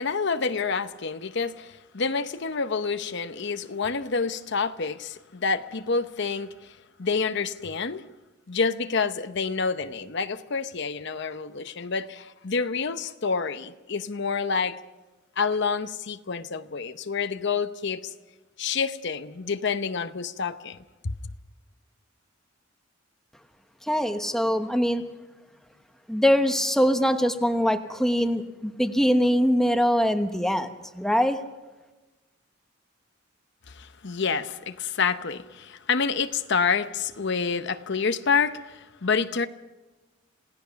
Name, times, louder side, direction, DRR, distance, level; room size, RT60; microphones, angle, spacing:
voice 1, 0.0-8.0 8.5-14.8 15.4-18.1 18.6-20.8 21.0-21.1 33.7-39.5, left 5 dB, 60° left, 0.8 m, -28 dB
voice 2, 23.9-25.0 26.1-30.7 30.9-31.4, equal, ahead, 1.1 m, -23 dB
28.0 x 17.5 x 5.9 m
head